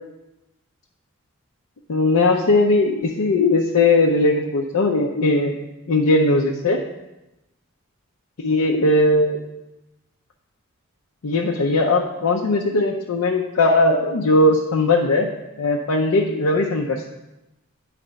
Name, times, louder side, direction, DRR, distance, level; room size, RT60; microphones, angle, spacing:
voice 1, 1.9-5.6 5.9-6.8 8.4-9.4 11.2-15.3 15.6-17.1, left 2 dB, 90° left, -1 dB, 0.6 m, -19 dB
9.7 x 3.3 x 5.1 m, 0.98 s
head